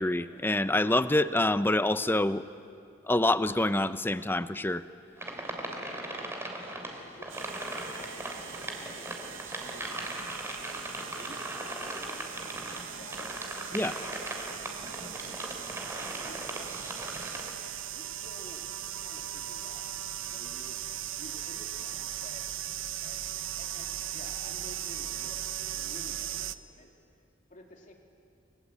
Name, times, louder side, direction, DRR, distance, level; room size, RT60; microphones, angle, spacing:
voice 1, 0.0-2.4 3.1-4.8 13.7-13.9, left 1 dB, 10° left, 13 dB, 0.7 m, -26 dB
sound 1, 5.2-17.5, right 1 dB, 15° right, 3.2 m, -39 dB
voice 2, 6.0-6.4 6.9-10.3 10.7-13.3 13.9-14.3 14.9-15.6 16.0-17.0 17.8-18.7 19.0-19.8 20.2-20.8 21.1-22.4 23.0-23.2 23.6-26.9 27.5-27.9, left 1 dB, 45° left, 2 dB, 3.3 m, -52 dB
sound 2, 7.3-26.5, right 11 dB, 80° right, 0.8 m, -39 dB
30.0 x 22.0 x 8.3 m, 2.5 s
head